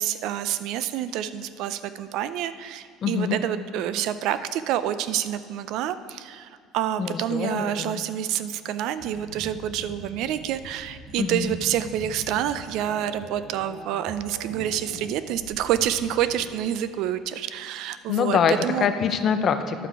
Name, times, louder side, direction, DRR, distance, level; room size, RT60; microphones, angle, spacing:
voice 1, 0.0-18.9, right 10 dB, 60° right, 13 dB, 0.4 m, -28 dB
voice 2, 3.0-3.4 7.0-8.0 11.2-11.5 18.1-18.5 18.8-19.9, left 7 dB, 35° left, 9 dB, 0.5 m, -24 dB
sound 1, 9.0-16.6, right 2 dB, 30° right, 0.9 m, -42 dB
11.0 x 5.9 x 4.6 m, 2.2 s
cardioid pair, 160°, 0 cm